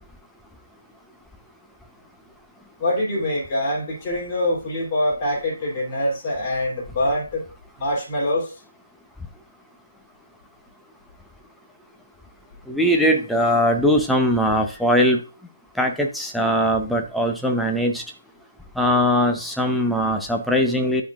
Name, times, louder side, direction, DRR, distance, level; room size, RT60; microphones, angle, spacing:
voice 1, 2.8-7.4 7.8-8.5, left 1 dB, 30° left, 2.9 m, -24 dB
voice 2, 12.7-15.2 15.8-18.0 18.8-21.0, equal, ahead, 0.7 m, -20 dB
11.5 x 3.9 x 2.4 m
figure-of-eight pair, 145°, 0 cm